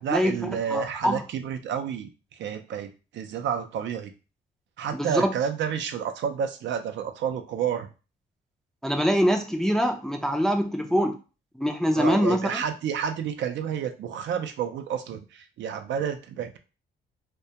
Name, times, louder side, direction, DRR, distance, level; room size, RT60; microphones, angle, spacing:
voice 1, 0.0-2.1 2.4-4.1 4.8-7.9 12.0-16.6, right 8 dB, 65° right, 6 dB, 0.4 m, -30 dB
voice 2, 0.7-1.2 4.9-5.3 8.8-11.2 11.5-12.6, equal, ahead, 4 dB, 0.3 m, -24 dB
2.2 x 2.1 x 2.7 m, 0.32 s
cardioid pair, 90°, 20 cm